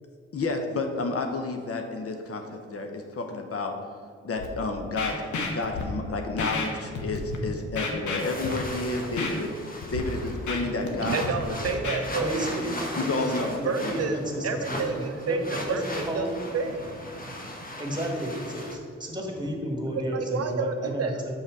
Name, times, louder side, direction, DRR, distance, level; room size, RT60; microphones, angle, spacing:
voice 1, 0.3-3.8 4.2-5.3 5.5-11.8 13.0-14.0, left 3 dB, 50° left, 4 dB, 0.8 m, -31 dB
Scratching (performance technique), 4.4-4.5 5.0-5.8 6.4-6.7 6.9-7.4 7.7-8.7 9.2-9.3 9.8-10.0 10.3-10.9 11.2-12.0, left 4 dB, 75° left, 1.0 m, -31 dB
sound 1, 8.2-18.8, left 1 dB, 30° left, 1.2 m, -37 dB
voice 2, 11.0-12.4 13.6-14.2 14.4-17.6 20.1-21.2, right 4 dB, 55° right, 6 dB, 0.6 m, -30 dB
voice 3, 12.2-14.9 15.3-16.3 17.8-21.3, equal, 15° right, 1 dB, 1.7 m, -32 dB
5.5 x 4.9 x 4.7 m, 2.3 s
supercardioid pair, 40°, 30 cm